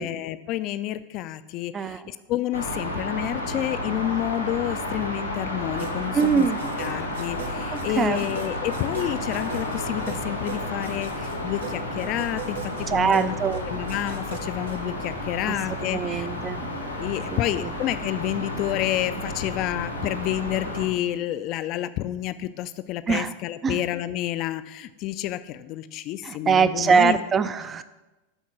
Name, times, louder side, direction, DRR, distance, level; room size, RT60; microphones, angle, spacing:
voice 1, 0.0-6.5 6.8-12.6 12.9-13.4 13.7-16.3 17.0-27.2, left 14 dB, 40° left, 13 dB, 0.4 m, -29 dB
sound 1, 2.5-20.9, left 1 dB, 90° left, 1.3 m, -32 dB
sound 2, 5.8-15.1, right 6 dB, 65° right, 0.7 m, -41 dB
voice 2, 6.1-6.6 7.7-8.2 12.9-13.6 15.5-15.6 15.9-16.6 17.3-17.7 23.1-23.3 23.6-23.8 26.2-27.8, right 6 dB, 20° right, 13 dB, 0.4 m, -23 dB
sound 3, 9.1-21.0, left 4 dB, 60° left, 0.8 m, -41 dB
7.9 x 4.3 x 5.9 m, 1.1 s
figure-of-eight pair, 90°, 0 cm